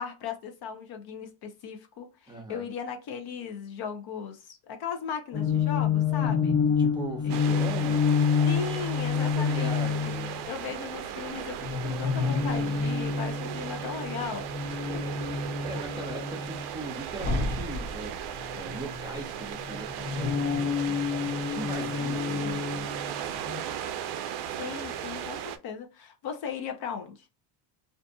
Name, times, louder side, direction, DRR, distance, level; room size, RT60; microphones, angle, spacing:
voice 1, 0.0-6.6 7.2-7.4 8.4-10.1 10.5-15.0 21.9-22.6 24.4-27.2, left 7 dB, 50° left, 0.6 m, -37 dB
voice 2, 2.3-2.7 6.2-8.1 9.4-10.4 14.8-15.2 15.6-18.2 18.5-22.9, right 2 dB, 10° right, 0.6 m, -40 dB
sound 1, 5.3-10.5 11.6-16.7 17.1-19.2 19.6-23.6, left 6 dB, 70° left, 1.0 m, -28 dB
sound 2, 7.3-25.6, right 9 dB, 55° right, 0.5 m, -37 dB
2.5 x 2.4 x 2.3 m
cardioid pair, 120°, 49 cm